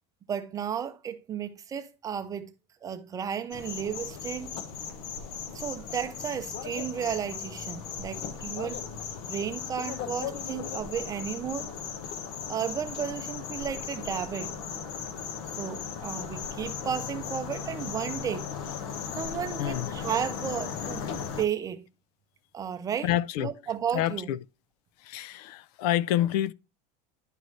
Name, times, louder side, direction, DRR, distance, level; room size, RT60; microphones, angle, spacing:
voice 1, 0.3-2.5 2.8-4.6 5.5-8.8 9.3-11.7 12.5-14.5 15.6-18.5 19.1-21.1 21.4-21.8 22.5-23.1 23.4-24.3, right 8 dB, 15° right, 0.5 m, -33 dB
sound 1, 3.5-21.4, left 7 dB, 60° left, 1.2 m, -37 dB
voice 2, 19.6-19.9 23.0-23.5 23.9-24.4 25.0-26.5, left 13 dB, 90° left, 0.5 m, -28 dB
10.5 x 4.0 x 3.1 m
cardioid pair, 175°, 20 cm